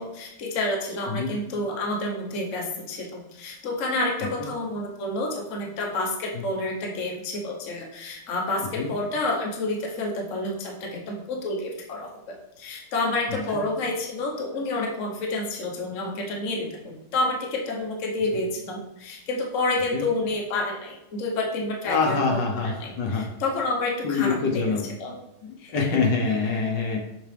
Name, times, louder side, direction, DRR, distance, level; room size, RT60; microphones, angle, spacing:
voice 1, 0.0-24.7 25.0-25.2 25.6-25.9, left 2 dB, 45° left, -1 dB, 1.2 m, -29 dB
voice 2, 21.9-23.2 24.0-24.8 25.4-27.0, left 4 dB, 65° left, 0 dB, 1.5 m, -25 dB
6.8 x 4.3 x 3.4 m, 0.88 s
omnidirectional pair, 2.2 m